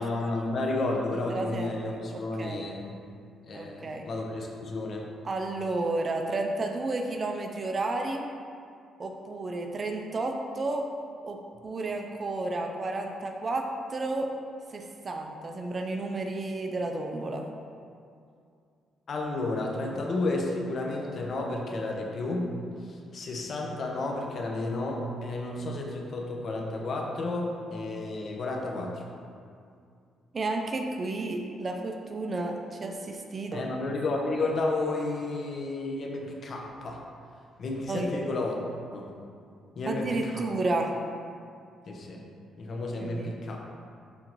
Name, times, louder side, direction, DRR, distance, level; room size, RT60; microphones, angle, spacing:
voice 1, 0.0-2.9 3.4-5.0 19.1-22.4 22.9-28.9 33.5-37.0 37.6-38.6 38.9-39.1 39.8-40.4 41.9-42.2 42.6-43.6, left 2 dB, 55° left, 0 dB, 1.1 m, -32 dB
voice 2, 1.3-1.8 2.1-2.6 3.5-4.1 5.2-8.3 9.0-10.9 11.2-14.3 14.7-17.4 30.3-33.6 37.9-38.1 39.9-40.9 43.0-43.3, right 2 dB, 40° right, 3 dB, 0.6 m, -32 dB
11.0 x 3.8 x 3.1 m, 2.4 s
cardioid pair, 90°, 0 cm